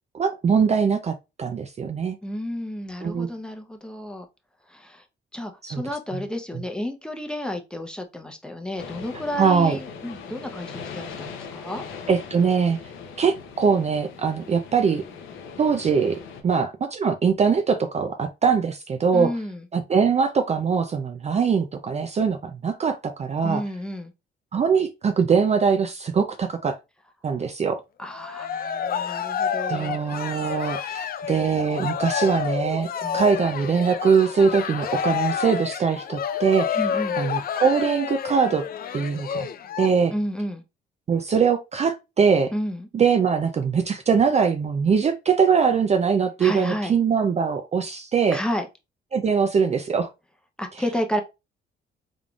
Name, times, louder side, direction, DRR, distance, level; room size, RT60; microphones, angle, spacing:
voice 1, 0.1-2.2 3.0-3.3 5.7-5.8 9.4-9.8 12.1-12.8 13.2-15.0 15.6-16.2 16.4-19.3 19.7-23.6 24.5-26.8 27.2-27.8 29.7-36.8 37.2-38.6 38.9-39.5 39.8-40.1 41.1-42.5 42.9-48.4 49.1-50.1, right 6 dB, 35° right, 0.4 m, -22 dB
voice 2, 2.2-4.3 4.7-5.0 5.3-11.8 19.1-19.7 23.4-24.1 28.0-30.0 33.0-33.2 36.7-37.2 40.1-40.6 42.5-42.9 46.4-46.9 48.3-48.7 50.6-51.2, equal, 5° left, 0.7 m, -31 dB
sound 1, 8.8-16.4, left 5 dB, 85° left, 0.8 m, -40 dB
Cheering, 28.1-39.9, left 8 dB, 50° left, 0.5 m, -29 dB
3.6 x 3.6 x 2.3 m
cardioid pair, 90°, 20 cm